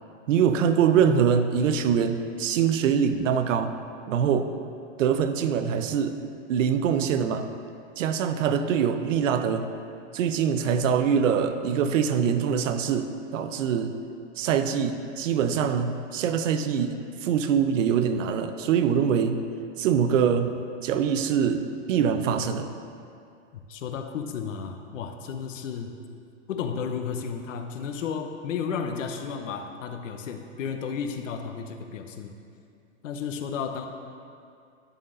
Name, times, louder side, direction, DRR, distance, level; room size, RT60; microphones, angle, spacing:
voice 1, 0.3-3.7 4.1-4.5 5.0-6.2 6.5-7.5 8.0-9.7 10.1-13.9 14.4-19.4 19.8-20.5 20.8-22.7, right 7 dB, 85° right, 9 dB, 0.7 m, -24 dB
voice 2, 23.7-25.9 26.5-32.3 33.0-33.9, left 6 dB, 85° left, 6 dB, 0.8 m, -33 dB
11.0 x 4.2 x 3.8 m, 2.4 s
supercardioid pair, 155°, 37 cm